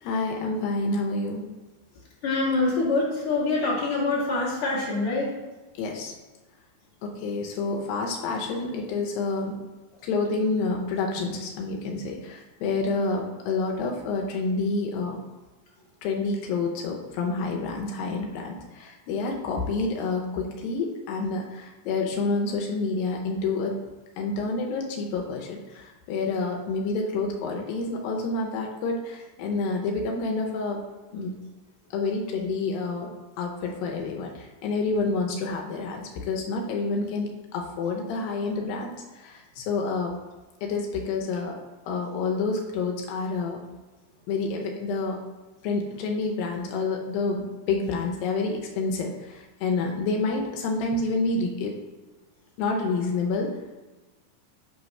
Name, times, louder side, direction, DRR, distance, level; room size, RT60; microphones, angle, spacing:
voice 1, 0.0-1.4 5.8-6.1 7.0-9.6 10.0-15.2 16.0-23.7 24.2-30.8 31.1-31.4 31.9-33.1 33.4-40.1 40.6-41.6 41.9-43.6 44.3-45.2 45.6-51.8 52.6-53.5, left 3 dB, 85° left, 1 dB, 2.5 m, -28 dB
voice 2, 2.2-5.3, left 3 dB, 45° left, -6 dB, 2.3 m, -25 dB
7.1 x 3.2 x 5.3 m, 1.2 s
omnidirectional pair, 4.0 m